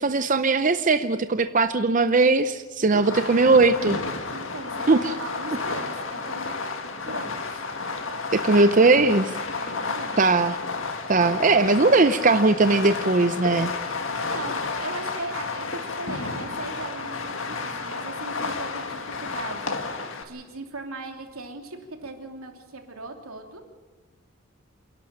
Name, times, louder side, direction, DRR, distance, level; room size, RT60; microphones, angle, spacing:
voice 1, 0.0-4.0 4.9-5.1 8.3-9.3 10.2-10.6 11.1-13.7, right 3 dB, 35° right, 10 dB, 0.6 m, -19 dB
Fireworks, 3.0-20.2, left 4 dB, 65° left, 1.9 m, -31 dB
voice 2, 4.3-6.5 7.0-7.4 9.5-10.2 14.2-14.5 14.8-19.8 20.2-23.6, right 2 dB, 90° right, 3 dB, 3.1 m, -38 dB
27.5 x 11.5 x 8.8 m, 1.2 s
head